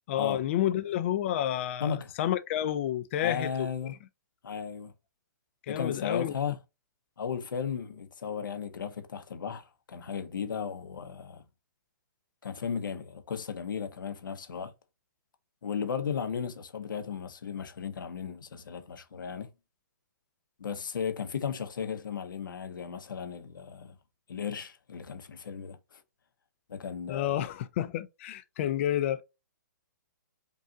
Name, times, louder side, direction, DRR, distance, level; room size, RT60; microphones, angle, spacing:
voice 1, 0.1-3.7 5.7-6.3 27.1-29.2, left 11 dB, 40° left, 0.4 m, -30 dB
voice 2, 1.8-2.1 3.2-3.9 4.4-4.9 5.7-6.6 7.2-11.4 12.4-14.7 15.6-19.5 20.6-24.0 24.3-26.0 26.7-27.5, left 7 dB, 80° left, 0.9 m, -35 dB
5.3 x 2.4 x 2.7 m
hypercardioid pair, 150°, 11 cm